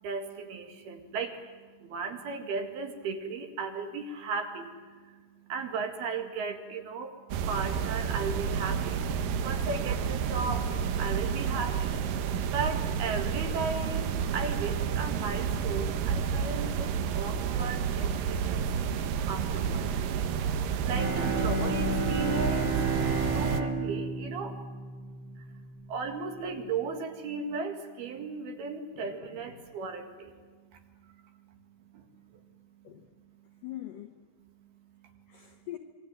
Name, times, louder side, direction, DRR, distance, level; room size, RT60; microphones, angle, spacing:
voice 1, 0.0-7.2 7.5-9.0 9.4-10.7 11.0-12.0 12.5-18.7 19.3-20.3 20.8-22.9 23.3-24.6 25.4-25.6 25.9-30.3 31.1-31.2 31.5-31.6 31.9-32.0 32.3-32.4, right 4 dB, 60° right, 5 dB, 3.5 m, -36 dB
sound 1, 7.3-23.6, right 7 dB, 90° right, 1.9 m, -30 dB
Bowed string instrument, 20.8-25.7, right 3 dB, 25° right, 3.2 m, -32 dB
voice 2, 28.9-29.6 32.8-33.1 33.6-34.1 35.3-35.8, left 13 dB, 75° left, 5 dB, 2.0 m, -43 dB
28.0 x 23.0 x 9.1 m, 1.5 s
omnidirectional pair, 5.7 m